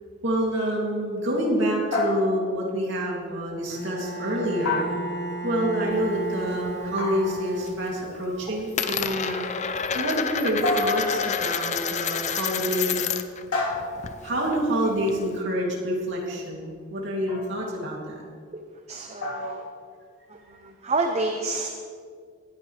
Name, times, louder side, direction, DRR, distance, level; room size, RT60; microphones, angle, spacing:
voice 1, 0.2-4.8 5.4-13.1 14.2-18.1, equal, 60° right, -3 dB, 2.8 m, -27 dB
sound 1, 1.9-2.7 4.7-5.5 7.0-7.6 9.0-9.4 10.6-11.6 13.5-14.3 17.3-17.6 19.2-19.7, left 2 dB, 90° left, 3.0 m, -29 dB
Bowed string instrument, 3.7-8.2, right 1 dB, 55° left, 1.1 m, -33 dB
Coin (dropping), 5.9-7.1 7.4-7.9 8.1-13.4 13.7-15.4, left 7 dB, 35° left, 0.5 m, -29 dB
voice 2, 18.9-19.6 20.3-21.7, right 3 dB, 30° right, 4 dB, 0.7 m, -29 dB
20.0 x 11.0 x 3.4 m, 2.1 s
head